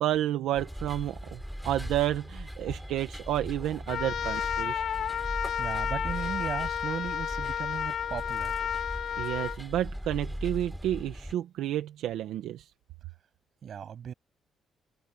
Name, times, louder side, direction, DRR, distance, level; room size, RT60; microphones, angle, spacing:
voice 1, 0.0-4.8 9.2-12.7, right 12 dB, 85° right, 1.4 m, -30 dB
sound 1, 0.5-11.3, equal, ahead, 7.8 m, -39 dB
Trumpet, 3.9-9.6, left 9 dB, 65° left, 7.9 m, -32 dB
voice 2, 5.6-8.6 13.6-14.1, right 8 dB, 60° right, 7.7 m, -37 dB
cardioid pair, 90°, 0 cm